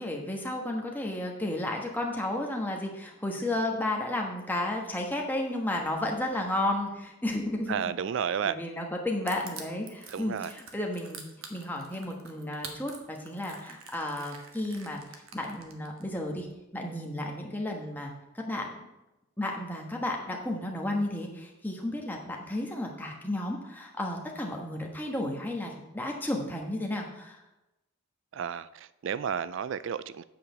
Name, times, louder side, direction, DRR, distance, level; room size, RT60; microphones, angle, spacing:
voice 1, 0.0-7.8 8.4-11.2 11.5-15.0 15.3-16.5 16.7-18.1 18.5-18.7 19.4-27.4, left 1 dB, 10° left, 0 dB, 1.3 m, -33 dB
voice 2, 7.7-8.6 10.1-10.5 28.3-30.2, right 7 dB, 55° right, 16 dB, 0.3 m, -32 dB
Crushing, 9.3-16.0, right 6 dB, 75° right, 1.3 m, -46 dB
8.5 x 5.0 x 6.8 m, 0.94 s
head